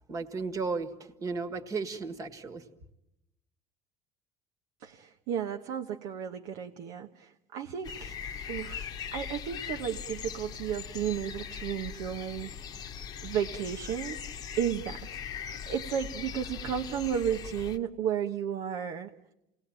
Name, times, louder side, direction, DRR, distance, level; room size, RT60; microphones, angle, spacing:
voice 1, 0.1-2.6, right 4 dB, 30° right, 8 dB, 1.7 m, -34 dB
voice 2, 4.8-8.1 8.5-12.5 13.2-14.3 14.6-19.1, right 9 dB, 75° right, 5 dB, 1.1 m, -33 dB
sound 1, 7.8-17.8, left 8 dB, 35° left, 1.0 m, -40 dB
29.0 x 19.5 x 8.9 m, 0.88 s
cardioid pair, 165°, 12 cm